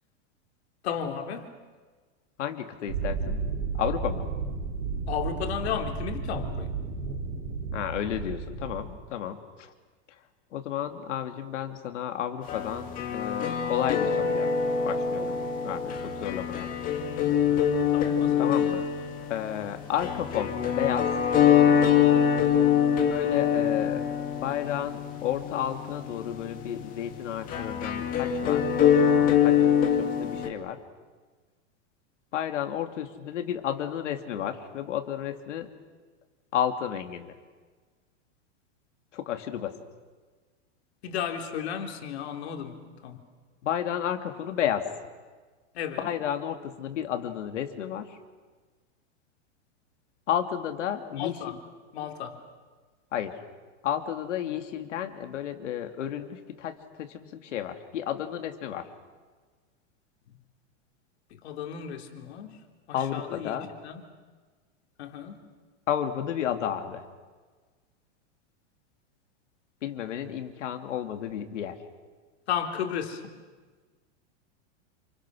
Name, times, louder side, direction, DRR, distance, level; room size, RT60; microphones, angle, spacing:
voice 1, 0.8-1.5 5.1-6.8 17.9-18.5 41.0-43.2 45.7-46.1 51.2-51.5 51.9-52.4 61.4-62.6 62.9-64.0 65.0-65.4 72.5-73.3, left 8 dB, 60° left, 4 dB, 3.5 m, -34 dB
voice 2, 2.4-3.4 3.7-4.2 7.7-9.7 10.5-15.4 15.6-16.7 18.4-18.9 19.3-21.1 23.1-24.2 24.4-28.6 29.4-29.6 29.9-30.8 32.3-35.7 36.5-37.4 39.1-39.8 43.6-44.9 46.0-48.2 50.3-51.6 53.1-53.4 53.8-58.9 62.9-63.7 65.9-67.1 69.8-71.8, left 10 dB, 85° left, 6 dB, 2.9 m, -32 dB
sound 1, 2.9-8.9, right 5 dB, 90° right, 6.1 m, -33 dB
sound 2, 12.5-30.5, left 8 dB, 25° left, 2.2 m, -25 dB
29.0 x 27.5 x 6.4 m, 1.4 s
supercardioid pair, 170°, 36 cm